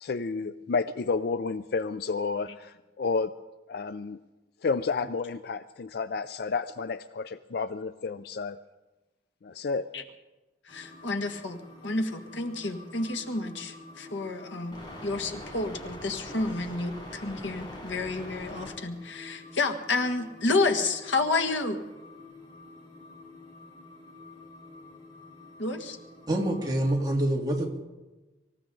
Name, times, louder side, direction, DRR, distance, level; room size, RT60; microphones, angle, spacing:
voice 1, 0.0-3.3 3.7-4.2 4.6-8.6 9.4-9.9, left 4 dB, 55° left, 13 dB, 0.4 m, -31 dB
voice 2, 10.7-11.6 11.8-21.8 25.6-26.0, left 3 dB, 90° left, 6 dB, 1.7 m, -30 dB
sound 1, 10.7-27.0, left 1 dB, 25° left, 4.8 m, -46 dB
voice 3, 26.3-27.8, right 1 dB, 20° right, 0 dB, 2.2 m, -26 dB
25.0 x 15.0 x 3.9 m, 1.1 s
head